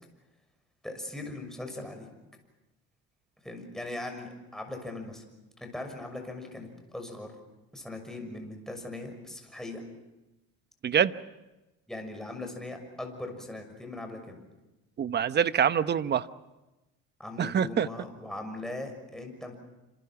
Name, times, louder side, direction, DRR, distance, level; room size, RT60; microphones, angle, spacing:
voice 1, 0.8-2.1 3.4-5.2 5.6-7.3 7.7-9.8 11.9-14.4 17.2-19.5, left 2 dB, ahead, 4 dB, 6.3 m, -39 dB
voice 2, 15.0-16.3 17.4-17.9, right 8 dB, 35° right, 13 dB, 1.0 m, -25 dB
28.5 x 26.5 x 6.0 m, 1.0 s
cardioid pair, 115°, 29 cm